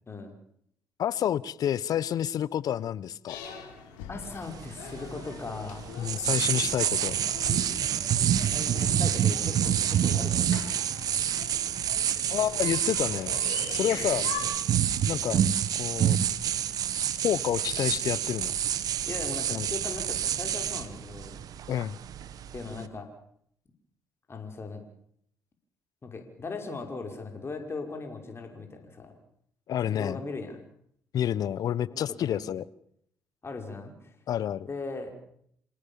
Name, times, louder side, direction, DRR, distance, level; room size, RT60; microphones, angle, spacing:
voice 1, 1.0-3.4 6.0-7.2 12.3-13.4 13.7-14.2 15.1-15.4 15.8-16.2 17.2-18.5 19.5-19.7 21.7-22.0 29.7-30.2 31.1-32.6 34.3-34.7, left 10 dB, 65° left, 19 dB, 1.1 m, -29 dB
sound 1, 3.3-14.4, left 7 dB, 80° left, 4.6 m, -43 dB
voice 2, 4.1-6.0 8.5-10.6 14.0-14.1 19.1-21.4 22.5-23.1 24.3-24.8 26.0-29.1 29.8-30.6 31.9-32.4 33.4-34.1 34.7-35.1, left 3 dB, 35° left, 4 dB, 5.6 m, -38 dB
sound 2, 4.4-22.9, right 10 dB, 65° right, 1.6 m, -28 dB
28.0 x 18.0 x 7.2 m, 0.68 s
hypercardioid pair, 50°, 7 cm